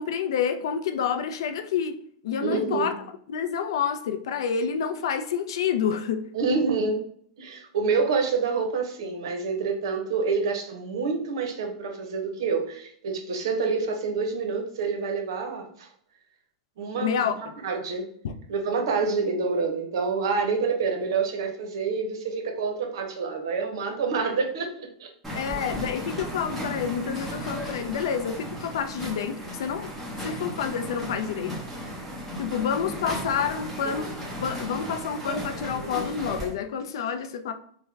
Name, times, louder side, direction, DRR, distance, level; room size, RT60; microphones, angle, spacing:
voice 1, 0.0-2.0 2.2-2.9 3.3-6.3 17.0-17.3 18.2-18.3 25.3-29.9 30.2-31.6 32.4-34.1 34.4-37.5, left 7 dB, 80° left, 0.4 m, -28 dB
voice 2, 2.4-2.9 6.3-7.0 7.4-15.9 16.8-18.1 18.5-25.1, right 4 dB, 75° right, 0.7 m, -27 dB
sound 1, 25.2-36.5, equal, 5° right, 0.9 m, -35 dB
3.4 x 2.1 x 3.2 m
supercardioid pair, 160°, 3 cm